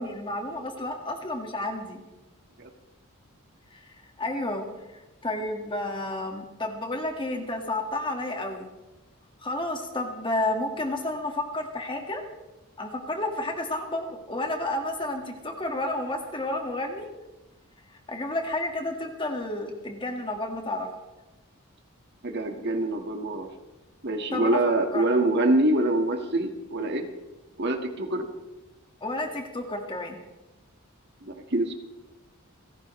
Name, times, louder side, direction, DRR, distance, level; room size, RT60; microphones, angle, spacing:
voice 1, 0.0-2.0 3.7-4.7 5.2-8.7 9.4-12.2 12.8-17.1 18.1-20.9 24.3-24.6 24.9-25.0 29.0-30.2, left 2 dB, 25° left, 3 dB, 1.8 m, -31 dB
voice 2, 22.2-23.5 24.0-27.1 27.6-28.3 31.2-31.7, right 2 dB, 50° right, 4 dB, 1.7 m, -25 dB
29.5 x 11.0 x 3.2 m, 1.0 s
head